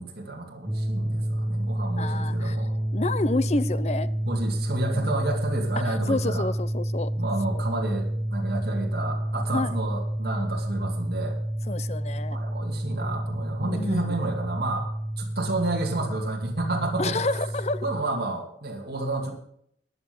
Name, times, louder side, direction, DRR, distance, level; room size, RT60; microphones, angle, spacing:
voice 1, 0.0-2.7 4.2-6.5 7.2-11.4 12.3-14.9 15.2-17.2 17.8-19.3, right 2 dB, 60° right, -1 dB, 2.4 m, -30 dB
sound 1, 0.7-18.0, right 1 dB, 10° right, 0.7 m, -29 dB
voice 2, 2.0-2.6 2.9-4.1 4.9-5.2 5.8-7.1 7.6-7.7 9.5-9.8 11.7-12.4 13.6-14.1 17.0-17.8, left 2 dB, 40° left, 15 dB, 0.6 m, -29 dB
14.0 x 9.8 x 5.3 m, 0.68 s
head